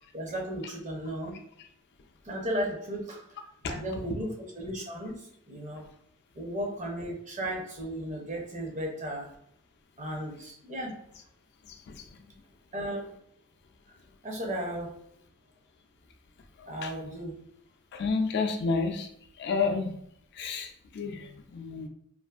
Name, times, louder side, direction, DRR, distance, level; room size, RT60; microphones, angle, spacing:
voice 1, 0.1-1.4 2.2-3.2 3.7-5.9 6.3-9.3 10.0-11.0 12.7-13.0 14.2-15.0 16.7-17.4, equal, 35° right, 0 dB, 0.6 m, -35 dB
voice 2, 11.6-12.3 16.6-17.2 17.9-19.1 19.4-20.0 20.3-21.9, left 4 dB, 50° left, 5 dB, 0.3 m, -31 dB
2.5 x 2.4 x 2.3 m, 0.69 s
head